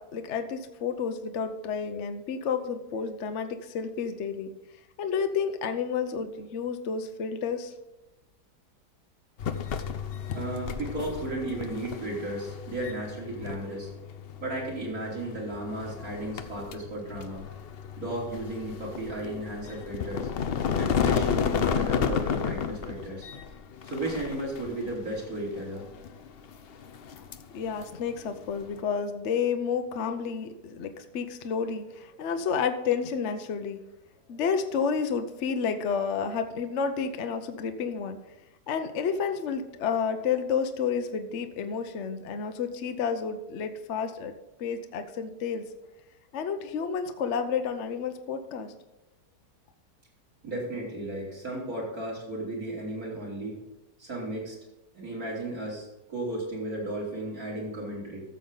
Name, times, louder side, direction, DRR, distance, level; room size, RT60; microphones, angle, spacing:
voice 1, 0.0-4.5 5.0-7.7 27.5-33.8 34.3-38.2 38.7-44.3 44.6-45.6 46.3-48.7, left 6 dB, 55° left, 7 dB, 0.9 m, -30 dB
sound 1, 9.4-28.8, left 7 dB, 80° left, 0.5 m, -33 dB
voice 2, 10.3-13.9 14.4-17.4 18.0-20.3 20.8-23.3 23.9-25.8 50.4-53.6 54.0-54.6 54.9-58.2, right 1 dB, 55° right, -4 dB, 3.6 m, -34 dB
14.0 x 6.8 x 3.9 m, 1.0 s
omnidirectional pair, 1.8 m